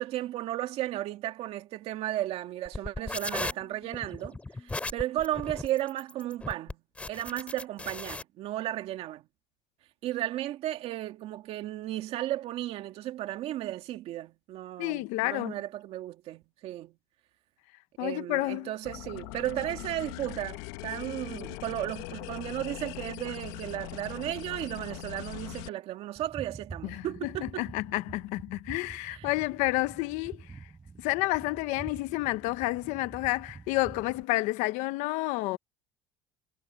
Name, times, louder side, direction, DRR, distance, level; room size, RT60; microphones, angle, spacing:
voice 1, 0.0-4.4 4.6-6.8 7.1-9.2 10.0-16.9 18.0-27.6 29.1-29.3, right 14 dB, 50° right, 2.3 m, -34 dB
sound 1, 2.6-8.2, left 3 dB, 10° left, 3.1 m, -37 dB
voice 2, 14.8-15.6 18.0-18.7 26.8-30.4 31.0-35.6, left 20 dB, 70° left, 1.0 m, -30 dB
sound 2, 18.8-25.7, left 20 dB, 90° left, 1.2 m, -41 dB
sound 3, 26.2-34.2, right 4 dB, 15° right, 1.2 m, -47 dB
cardioid pair, 155°, 13 cm